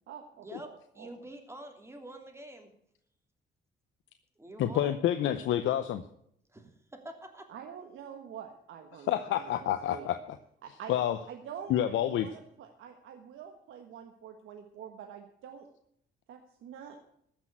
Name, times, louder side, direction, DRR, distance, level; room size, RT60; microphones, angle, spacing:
voice 1, 0.1-1.1 7.5-10.1 10.6-10.9 11.3-15.7 16.3-17.0, right 8 dB, 80° right, 4 dB, 1.4 m, -46 dB
voice 2, 0.9-2.7 4.4-5.0 6.5-7.5, right 1 dB, 15° right, 4 dB, 3.0 m, -46 dB
voice 3, 4.6-6.0 9.1-10.2 10.9-11.2 11.7-12.3, left 11 dB, 80° left, 9 dB, 0.8 m, -28 dB
15.0 x 6.3 x 8.7 m, 0.70 s
cardioid pair, 90°, 20 cm